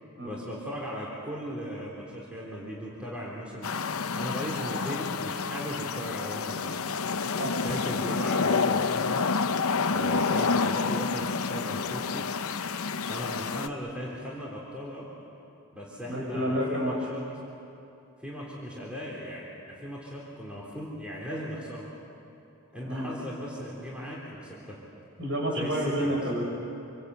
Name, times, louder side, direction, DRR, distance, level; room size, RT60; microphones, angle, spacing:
voice 1, 0.2-3.7 4.1-6.8 7.6-9.3 9.9-12.3 13.0-15.1 15.7-17.3 18.2-21.9 22.7-24.8 25.6-26.2, equal, 5° right, -5 dB, 3.6 m, -37 dB
sound 1, 3.6-13.7, left 4 dB, 75° left, 0.8 m, -29 dB
voice 2, 16.1-17.0 22.8-23.1 25.2-26.4, equal, 60° right, -2 dB, 7.2 m, -29 dB
27.0 x 24.0 x 8.2 m, 2.8 s
head